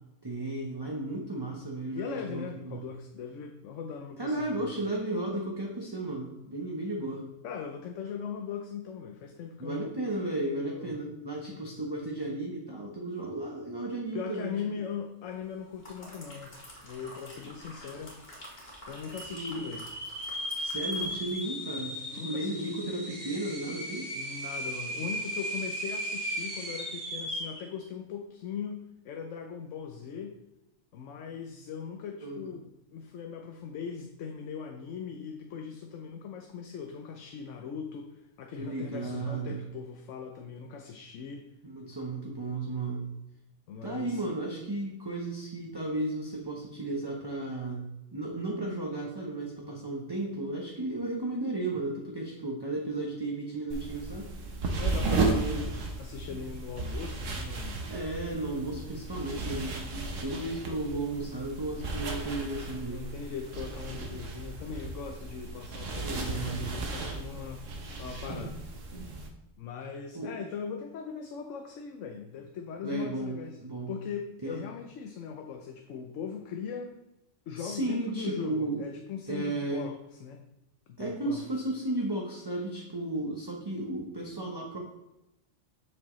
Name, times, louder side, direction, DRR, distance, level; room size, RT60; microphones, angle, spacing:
voice 1, 0.2-2.8 4.2-7.2 9.6-14.6 19.3-19.6 20.6-24.1 32.2-32.5 38.6-39.6 41.6-43.1 43.8-54.3 55.3-55.7 57.9-63.0 66.0-66.7 70.1-70.3 72.8-73.9 74.4-74.6 77.6-78.8 79.3-79.9 81.0-84.8, right 2 dB, 20° right, -1 dB, 0.9 m, -34 dB
voice 2, 1.9-4.7 7.4-9.9 10.7-11.0 14.1-16.6 16.8-18.2 18.9-19.9 22.0-22.8 24.1-30.3 30.9-41.4 43.7-44.2 54.8-55.5 56.0-57.8 62.9-67.7 68.0-68.7 69.6-73.6 73.9-77.0 77.5-80.4 80.9-81.4, left 6 dB, 80° left, 4 dB, 1.0 m, -40 dB
sound 1, 15.5-21.5 21.9-22.0, equal, 50° left, 2.3 m, -49 dB
sound 2, 16.7-16.8 17.0-17.6 18.1-18.2 18.9-27.7, equal, 50° right, 1.9 m, -36 dB
sound 3, 53.7-69.3, right 3 dB, 85° right, 1.3 m, -35 dB
7.2 x 6.4 x 3.1 m, 0.92 s
omnidirectional pair, 1.3 m